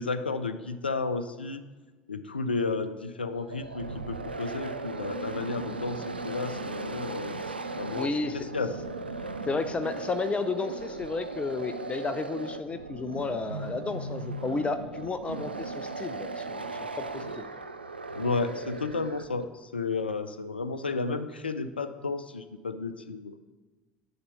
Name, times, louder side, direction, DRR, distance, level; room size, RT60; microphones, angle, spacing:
voice 1, 0.0-1.6 2.1-7.4 7.8-8.7 18.1-23.4, left 4 dB, 85° left, 12 dB, 0.4 m, -32 dB
sound 1, 3.3-19.4, right 3 dB, 90° right, 0.4 m, -37 dB
voice 2, 8.0-8.5 9.5-16.7 17.0-17.5, left 3 dB, 25° left, 10 dB, 0.5 m, -32 dB
9.6 x 4.3 x 6.7 m, 1.2 s
figure-of-eight pair, 65°, 5 cm